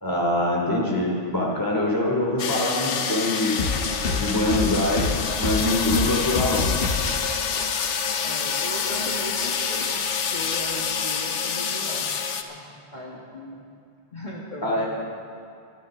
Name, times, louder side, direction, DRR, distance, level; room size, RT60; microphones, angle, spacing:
voice 1, 0.0-3.6 4.2-6.6 14.6-14.9, left 1 dB, 15° left, -3 dB, 2.9 m, -24 dB
sound 1, 2.4-12.4, left 6 dB, 85° left, 1.2 m, -27 dB
sound 2, 3.6-7.2 7.5-8.1 8.4-8.6 8.8-9.0 9.4-11.1, left 3 dB, 55° left, 1.2 m, -29 dB
voice 2, 8.2-12.1 12.5-13.7 14.1-14.9, equal, 40° left, -4 dB, 1.8 m, -38 dB
25.5 x 11.0 x 3.8 m, 2.4 s
omnidirectional pair, 1.2 m